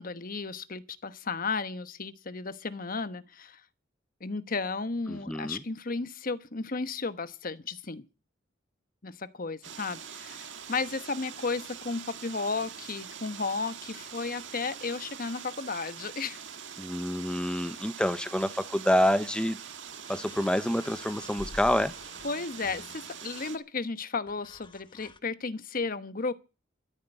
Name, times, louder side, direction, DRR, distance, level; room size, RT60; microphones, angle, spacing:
voice 1, 0.0-3.6 4.2-8.0 9.0-16.4 22.2-26.3, left 4 dB, 50° left, 1.1 m, -34 dB
voice 2, 5.1-5.6 16.8-19.6 20.1-21.9, equal, 5° left, 0.8 m, -27 dB
sound 1, 9.6-23.6, right 8 dB, 75° right, 1.8 m, -44 dB
sound 2, 20.1-23.3 24.3-25.2, left 2 dB, 25° left, 0.9 m, -48 dB
13.5 x 10.5 x 9.1 m
head